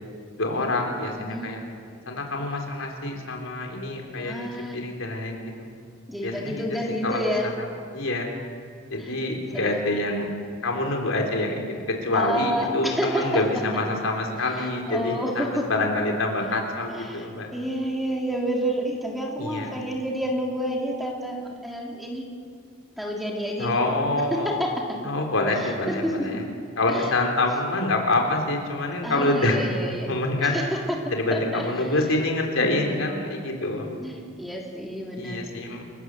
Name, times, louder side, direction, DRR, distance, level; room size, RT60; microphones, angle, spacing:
voice 1, 0.4-1.6 2.1-5.4 6.2-6.5 7.0-7.5 7.9-8.3 8.9-10.3 10.6-15.4 15.7-17.5 19.4-19.7 23.6-24.5 25.0-26.4 26.8-29.6 30.1-30.6 31.1-33.9 35.2-35.8, left 2 dB, 75° left, 1 dB, 3.8 m, -26 dB
voice 2, 1.2-1.5 4.2-4.8 6.1-7.5 9.0-9.1 9.5-9.8 12.1-13.4 14.4-15.7 16.9-22.3 23.0-23.8 24.3-25.0 25.6-25.7 26.0-26.4 26.9-27.1 29.0-30.1 30.4-31.9 32.8-33.2 33.9-35.5, equal, ahead, -1 dB, 3.1 m, -29 dB
28.5 x 16.0 x 8.0 m, 2.3 s
head